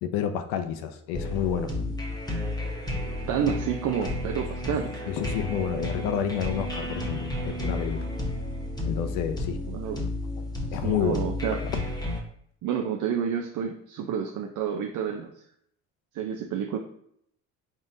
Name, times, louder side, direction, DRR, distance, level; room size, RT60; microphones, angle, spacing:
voice 1, 0.0-1.9 4.0-4.1 5.1-8.1 8.8-9.6 10.4-11.2 11.6-11.8, left 9 dB, 80° left, 8 dB, 0.6 m, -30 dB
sound 1, 1.1-12.2, left 1 dB, 10° left, 1.1 m, -32 dB
voice 2, 3.3-4.9 9.7-10.0 10.8-11.6 12.6-15.3 16.1-16.8, right 8 dB, 60° right, 2 dB, 0.6 m, -29 dB
3.8 x 3.5 x 2.7 m, 0.69 s
supercardioid pair, 70°, 36 cm